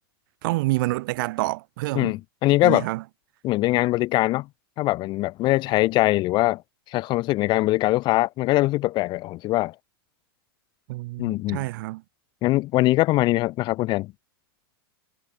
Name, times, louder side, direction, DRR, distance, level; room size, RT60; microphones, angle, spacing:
voice 1, 0.4-2.2 2.6-3.0 10.9-12.0, right 20 dB, 60° right, 1.7 m, -27 dB
voice 2, 1.9-2.9 3.4-4.5 4.8-6.6 6.9-9.7 11.2-11.7 12.4-14.1, left 18 dB, 40° left, 1.1 m, -22 dB
hypercardioid pair, 130°, 13 cm